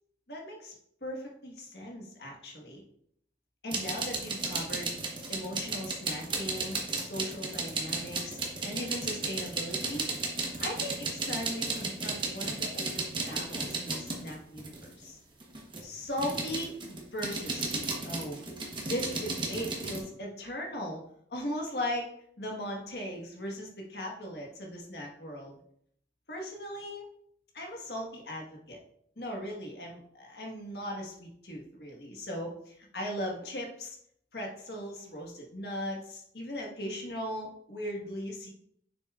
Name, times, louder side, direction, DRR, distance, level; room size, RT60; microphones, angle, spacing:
voice 1, 0.3-0.7 1.0-2.8 3.6-5.0 5.3-8.4 8.6-10.0 10.6-15.2 15.8-18.5 18.8-21.0 21.3-22.1 22.4-25.5 26.3-27.1 27.5-28.8 29.2-34.0 34.3-38.5, equal, 65° left, 0 dB, 1.5 m, -38 dB
sound 1, 3.7-14.9 15.4-20.0, right 3 dB, 30° right, 1.0 m, -34 dB
7.0 x 6.5 x 2.4 m, 0.67 s
head